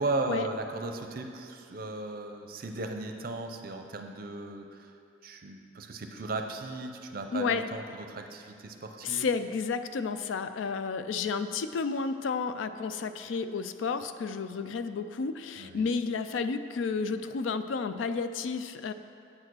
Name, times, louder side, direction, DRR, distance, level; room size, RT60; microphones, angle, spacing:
voice 1, 0.0-4.8 5.2-9.3 15.6-15.9, right 2 dB, 50° right, 5 dB, 0.6 m, -36 dB
voice 2, 7.3-7.6 9.0-18.9, left 5 dB, 85° left, 11 dB, 0.4 m, -31 dB
8.6 x 4.8 x 6.2 m, 2.5 s
head